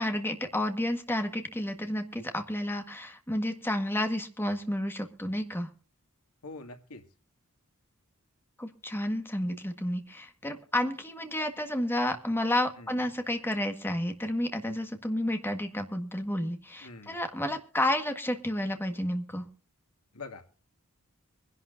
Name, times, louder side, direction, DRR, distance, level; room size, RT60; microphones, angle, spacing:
voice 1, 0.0-5.7 8.6-19.5, left 1 dB, 10° left, 6 dB, 1.6 m, -31 dB
voice 2, 6.4-7.0 12.8-13.0 16.8-17.2 20.1-20.5, left 3 dB, 90° left, 6 dB, 2.3 m, -44 dB
24.0 x 11.5 x 2.6 m, 0.37 s
head